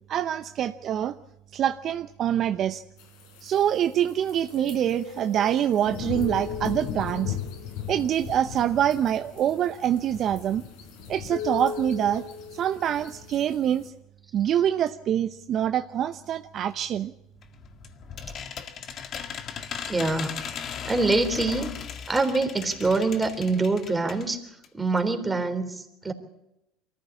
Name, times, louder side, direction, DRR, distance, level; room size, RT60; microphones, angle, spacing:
voice 1, 0.1-1.2 1.5-2.8 3.4-7.4 7.9-10.6 11.1-12.2 12.5-13.9 14.3-17.1, right 10 dB, 50° right, 10 dB, 0.7 m, -25 dB
sound 1, 3.0-13.9, left 7 dB, 70° left, 4.1 m, -37 dB
sound 2, 17.4-24.3 24.6-24.7 25.0-25.1, left 7 dB, 50° left, 1.9 m, -37 dB
voice 2, 19.9-21.7 22.1-24.4 24.7-26.1, right 3 dB, 15° right, 6 dB, 3.6 m, -25 dB
23.5 x 14.5 x 8.4 m, 0.87 s
hypercardioid pair, 80°, 0 cm